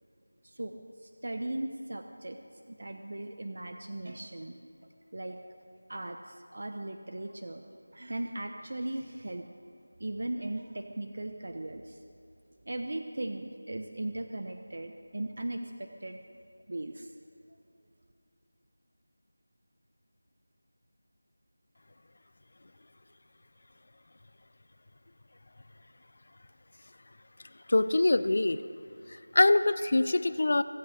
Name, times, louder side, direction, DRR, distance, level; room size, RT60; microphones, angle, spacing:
voice 1, 0.4-0.8 1.0-2.4 2.7-4.5 5.1-5.4 5.9-7.6 7.9-9.5 10.0-12.0 12.6-16.2 16.7-17.1, right 1 dB, 55° right, 6 dB, 1.0 m, -38 dB
voice 2, 27.7-28.6 29.3-30.6, left 2 dB, 45° left, 14 dB, 0.6 m, -24 dB
24.0 x 9.1 x 6.6 m, 2.6 s
figure-of-eight pair, 175°, 0 cm